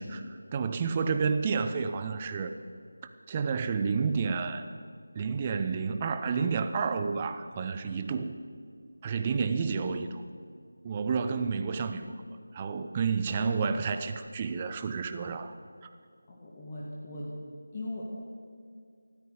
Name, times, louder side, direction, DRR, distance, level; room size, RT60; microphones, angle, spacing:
voice 1, 0.0-2.6 3.3-4.7 5.1-8.4 9.0-10.2 10.8-12.2 12.5-15.5, right 5 dB, 20° right, 9 dB, 0.7 m, -30 dB
voice 2, 16.3-17.3 17.7-18.0, left 1 dB, 25° left, -5 dB, 2.0 m, -39 dB
18.5 x 14.0 x 5.1 m, 2.2 s
figure-of-eight pair, 165°, 0 cm